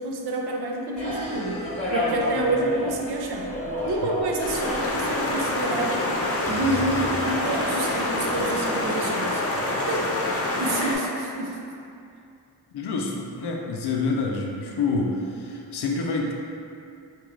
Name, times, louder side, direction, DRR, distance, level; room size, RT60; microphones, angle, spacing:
voice 1, 0.0-1.7 1.9-3.5 3.8-6.1 6.5-9.4 9.7-10.0 10.6-11.6, right 2 dB, 75° right, 0 dB, 0.6 m, -28 dB
sound 1, 1.0-8.6, left 1 dB, 15° left, 0.9 m, -32 dB
sound 2, 4.4-10.9, left 1 dB, 35° left, 0.6 m, -26 dB
voice 2, 12.7-16.3, left 3 dB, 85° left, 0 dB, 0.5 m, -27 dB
3.7 x 2.9 x 3.1 m, 2.5 s
wide cardioid pair, 80°, 39 cm